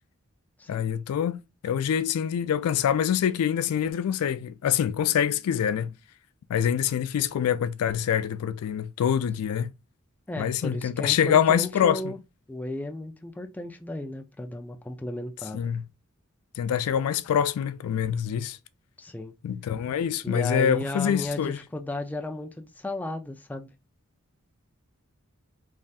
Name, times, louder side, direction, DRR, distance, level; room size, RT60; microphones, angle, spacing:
voice 1, 0.7-5.9 6.5-9.7 10.4-12.1 15.5-15.8 16.6-18.6 19.4-21.6, left 9 dB, 90° left, 0.3 m, -25 dB
voice 2, 10.3-12.2 12.5-15.7 19.0-19.3 20.2-23.7, left 2 dB, 5° left, 0.3 m, -34 dB
3.3 x 2.6 x 2.3 m
head